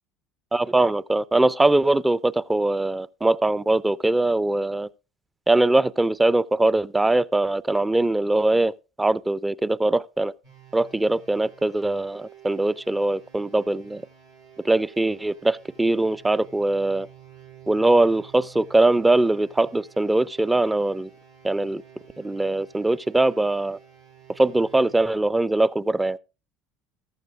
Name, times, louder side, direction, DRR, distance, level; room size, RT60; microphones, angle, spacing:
voice 1, 0.5-4.9 5.5-8.7 9.0-10.3 10.7-14.0 14.6-17.1 17.7-21.1 21.4-21.8 22.2-23.8 24.4-26.2, right 2 dB, 15° right, 0.4 m, -21 dB
sound 1, 10.4-25.0, right 10 dB, 90° right, 7.8 m, -50 dB
14.5 x 12.0 x 2.5 m
hypercardioid pair, 70°, 0 cm